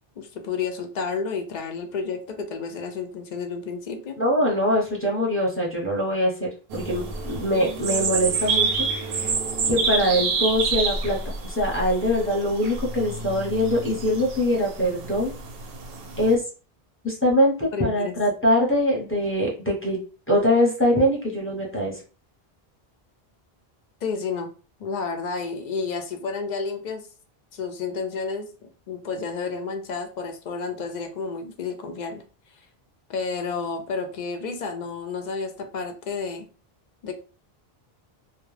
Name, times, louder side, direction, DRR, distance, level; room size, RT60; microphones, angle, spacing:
voice 1, 0.2-4.2 17.7-18.1 24.0-24.5 24.8-27.1 27.5-32.2 33.1-36.5 37.0-37.1, left 5 dB, 55° left, 6 dB, 0.5 m, -31 dB
voice 2, 4.2-8.9 9.2-9.3 9.7-11.2 11.4-15.3 16.2-16.4 17.0-20.0 20.3-22.0, equal, 15° left, -3 dB, 0.7 m, -23 dB
sound 1, 6.7-16.4, right 4 dB, 70° right, 0.8 m, -28 dB
2.2 x 2.1 x 3.2 m, 0.36 s
omnidirectional pair, 1.0 m